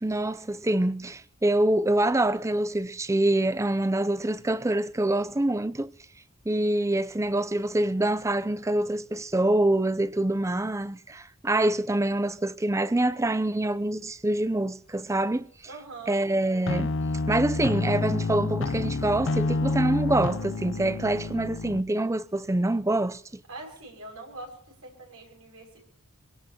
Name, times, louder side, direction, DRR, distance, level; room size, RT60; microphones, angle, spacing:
voice 1, 0.0-5.9 6.5-15.5 16.1-16.9 17.3-23.4, right 1 dB, 15° right, 0.5 m, -25 dB
voice 2, 15.7-16.2 23.5-24.5 24.8-25.8, right 2 dB, 85° right, 6.1 m, -43 dB
sound 1, 16.7-21.8, left 3 dB, 60° left, 0.6 m, -28 dB
23.5 x 17.5 x 2.9 m
head